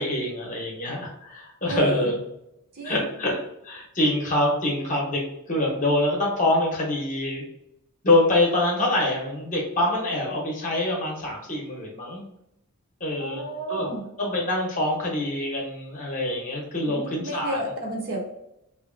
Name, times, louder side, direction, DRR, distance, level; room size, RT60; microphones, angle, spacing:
voice 1, 0.0-2.1 2.8-3.4 3.6-5.2 5.5-7.5 8.0-12.2 13.0-13.4 13.7-13.9 14.2-17.6, left 1 dB, 35° left, -1 dB, 0.8 m, -25 dB
voice 2, 1.7-2.1 2.7-3.1 13.2-14.0 16.9-18.2, right 2 dB, 45° right, -1 dB, 0.7 m, -31 dB
2.8 x 2.5 x 2.5 m, 0.82 s
head